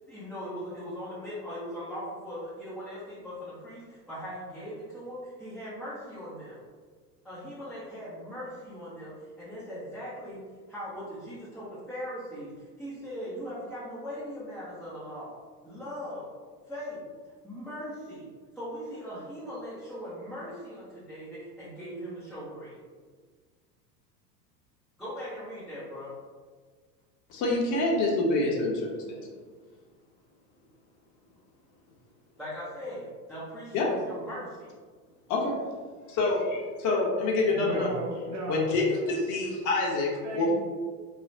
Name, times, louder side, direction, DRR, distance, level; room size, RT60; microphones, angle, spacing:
voice 1, 0.0-6.6 7.2-15.4 15.6-16.3 16.7-17.0 17.4-18.3 18.6-22.8 25.0-26.1 32.4-34.7 36.0-36.2, equal, ahead, -13 dB, 0.3 m, -40 dB
voice 2, 27.3-29.2 33.7-33.9 35.3-35.6 36.1-37.9 38.5-40.5, left 2 dB, 40° left, -2 dB, 0.6 m, -27 dB
voice 3, 37.5-38.7 40.2-40.5, right 1 dB, 35° right, -2 dB, 0.7 m, -35 dB
3.2 x 2.0 x 2.5 m, 1.5 s
hypercardioid pair, 95°, 49 cm